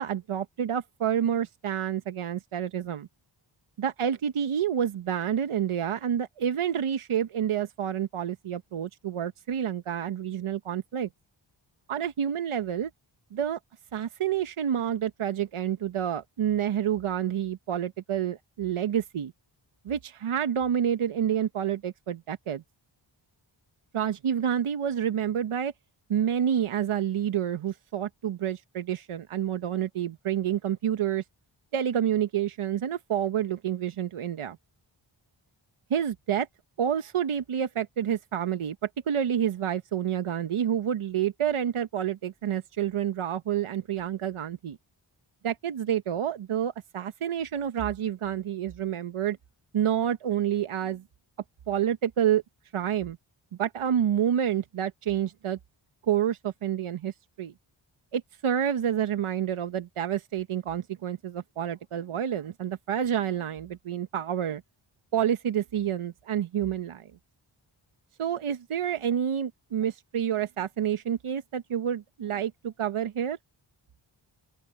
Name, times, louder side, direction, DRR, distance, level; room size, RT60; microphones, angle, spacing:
voice 1, 0.0-3.1 3.8-11.1 11.9-12.9 13.3-13.6 13.9-19.3 19.8-22.6 23.9-25.7 26.1-31.2 31.7-34.6 35.9-36.5 36.8-44.8 45.4-49.4 49.7-51.0 51.7-52.4 52.7-53.2 53.6-55.6 56.0-57.5 58.1-64.6 65.1-67.1 68.2-73.4, right 9 dB, 75° right, 1.0 m, -28 dB
open air
cardioid pair, 50°, 50 cm